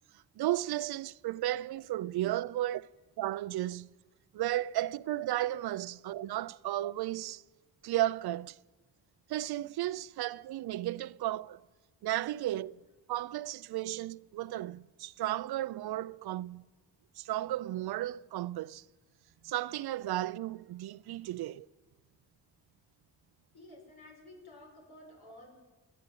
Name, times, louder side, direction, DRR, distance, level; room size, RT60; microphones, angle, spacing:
voice 1, 0.4-2.9 3.2-3.9 4.3-7.4 7.8-8.6 9.3-11.6 12.0-12.8 13.1-16.6 17.2-18.8 19.4-21.7, right 14 dB, 90° right, 0.6 m, -34 dB
voice 2, 23.5-25.6, left 1 dB, 80° left, 6.9 m, -53 dB
28.0 x 10.0 x 9.3 m
cardioid pair, 105°, 37 cm